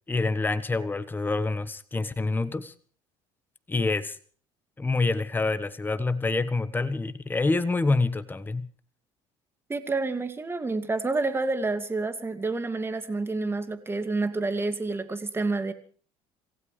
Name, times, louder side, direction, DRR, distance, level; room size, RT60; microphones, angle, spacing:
voice 1, 0.1-2.7 3.7-4.2 4.8-8.7, left 3 dB, 15° left, 12 dB, 1.3 m, -27 dB
voice 2, 9.7-15.7, right 3 dB, 20° right, 9 dB, 2.4 m, -29 dB
27.0 x 16.0 x 3.3 m, 0.44 s
supercardioid pair, 100°, 13 cm